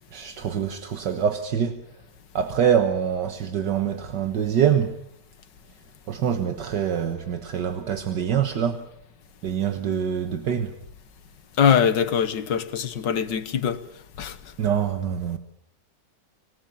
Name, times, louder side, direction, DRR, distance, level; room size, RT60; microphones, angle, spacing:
voice 1, 0.1-1.8 2.4-5.0 6.1-8.8 9.4-10.7 14.6-15.4, right 8 dB, 70° right, 1.9 m, -25 dB
voice 2, 11.6-13.8 14.2-14.4, left 8 dB, 75° left, 1.9 m, -22 dB
26.5 x 19.0 x 7.2 m
omnidirectional pair, 1.9 m